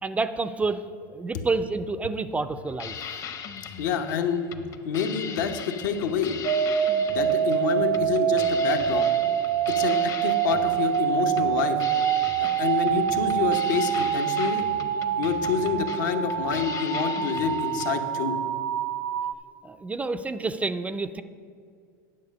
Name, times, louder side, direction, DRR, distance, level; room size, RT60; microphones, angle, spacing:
voice 1, 0.0-2.9 19.6-21.2, right 3 dB, 15° right, 12 dB, 0.3 m, -29 dB
sound 1, 2.7-17.9, left 7 dB, 35° left, 0.7 m, -39 dB
voice 2, 3.8-4.5 4.8-6.3 7.1-9.1 9.7-11.8 12.4-14.7 15.2-18.4, left 6 dB, 75° left, 6 dB, 0.9 m, -27 dB
sound 2, 6.4-19.3, right 10 dB, 85° right, 0.5 m, -25 dB
9.6 x 6.5 x 5.2 m, 2.3 s
supercardioid pair, 115°, 10 cm